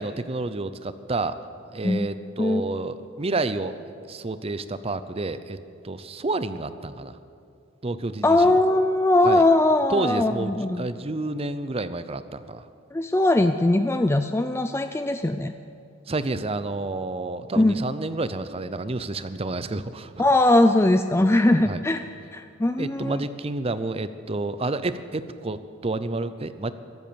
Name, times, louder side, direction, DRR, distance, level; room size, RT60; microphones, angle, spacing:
voice 1, 0.0-1.4 1.7-3.8 4.1-5.6 5.8-7.2 7.8-8.6 9.2-9.4 9.9-12.6 16.1-20.2 21.7-21.8 22.8-26.7, right 2 dB, 30° right, 12 dB, 0.6 m, -29 dB
voice 2, 8.2-10.9 12.9-15.5 17.6-17.8 20.2-22.0 22.3-23.2, left 2 dB, 15° left, 8 dB, 0.4 m, -20 dB
23.0 x 8.2 x 7.0 m, 2.4 s
head